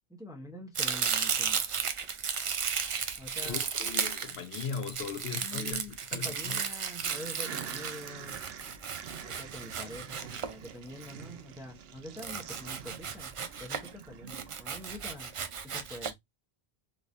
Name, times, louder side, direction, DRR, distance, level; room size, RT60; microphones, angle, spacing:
voice 1, 0.1-1.6 3.2-3.7 5.4-8.4 9.2-13.3 13.6-15.4 15.6-16.2, left 1 dB, 5° right, 0.7 m, -45 dB
Domestic sounds home sounds, 0.7-11.0 12.2-13.9 14.3-16.1, right 6 dB, 50° right, 0.4 m, -34 dB
voice 2, 3.4-6.6, left 6 dB, 80° left, 1.0 m, -39 dB
sound 1, 7.0-15.6, right 7 dB, 75° right, 0.8 m, -47 dB
3.5 x 3.0 x 2.5 m
omnidirectional pair, 1.0 m